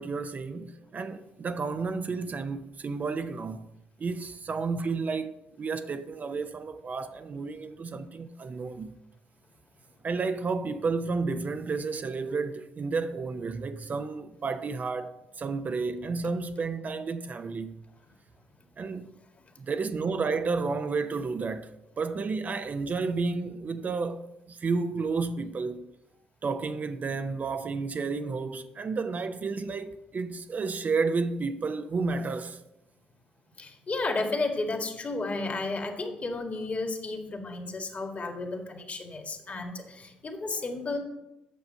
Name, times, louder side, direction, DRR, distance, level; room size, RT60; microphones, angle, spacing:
voice 1, 0.0-3.7 4.0-8.9 10.0-17.8 18.8-19.1 19.6-21.7 22.0-25.9 26.4-32.6, right 4 dB, 45° right, 0.6 m, -31 dB
voice 2, 33.6-41.0, left 3 dB, 40° left, 1.9 m, -32 dB
8.3 x 6.9 x 5.6 m
hypercardioid pair, 50°, 4 cm